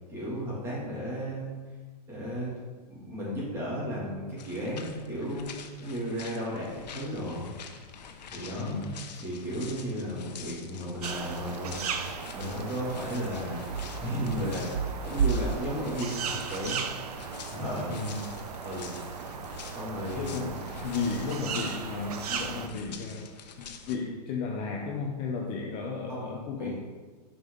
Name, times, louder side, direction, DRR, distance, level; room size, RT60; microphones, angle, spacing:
voice 1, 0.1-1.5 2.1-2.5 2.9-7.5 8.3-8.8 9.2-13.7 14.0-16.8 17.5-17.9 18.6-19.0 19.7-20.6 26.1-26.7, equal, 10° right, -7 dB, 2.7 m, -34 dB
sound 1, 4.4-24.0, left 6 dB, 85° left, 1.0 m, -46 dB
voice 2, 8.6-9.0 17.9-18.3 20.2-23.3 23.6-26.7, left 4 dB, 25° left, -1 dB, 0.7 m, -34 dB
sound 2, 11.0-22.7, right 6 dB, 65° right, 0.8 m, -35 dB
10.0 x 5.4 x 3.9 m, 1.4 s
hypercardioid pair, 165°, 21 cm